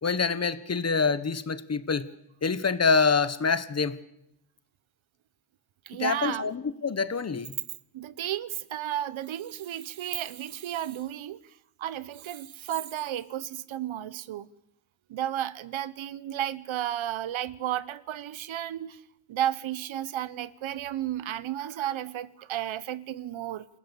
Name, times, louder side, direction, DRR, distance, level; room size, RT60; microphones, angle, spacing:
voice 1, 0.0-2.1 2.4-4.0 6.0-7.5, left 5 dB, 35° left, 1.3 m, -26 dB
voice 2, 5.9-6.5 7.9-11.4 11.8-14.5 15.1-19.0 19.3-23.7, right 12 dB, 90° right, 1.1 m, -33 dB
27.5 x 17.0 x 8.3 m
wide cardioid pair, 140°, 46 cm